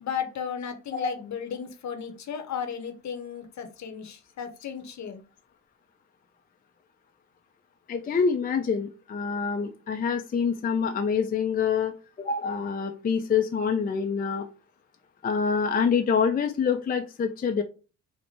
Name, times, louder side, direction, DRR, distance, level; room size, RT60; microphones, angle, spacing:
voice 1, 0.0-5.2, left 7 dB, 50° left, 7 dB, 0.8 m, -35 dB
voice 2, 7.9-14.4 15.2-17.6, left 6 dB, 25° left, 5 dB, 0.5 m, -26 dB
4.2 x 2.1 x 2.8 m, 0.34 s
supercardioid pair, 55°, 36 cm